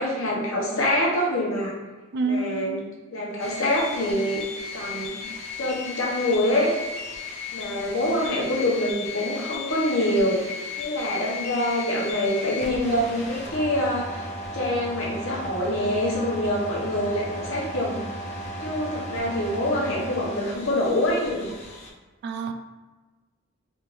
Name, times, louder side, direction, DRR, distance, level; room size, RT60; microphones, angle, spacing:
voice 1, 0.0-1.7 2.2-2.8 3.1-4.4 4.7-5.2 5.6-6.7 7.5-14.3 14.5-18.0 18.6-21.5, left 1 dB, 80° left, -4 dB, 1.0 m, -25 dB
voice 2, 2.1-2.9 22.2-22.5, right 3 dB, 55° right, 6 dB, 0.3 m, -28 dB
sound 1, 3.4-21.9, left 2 dB, 30° left, 0.5 m, -35 dB
3.4 x 2.5 x 3.1 m, 1.2 s
head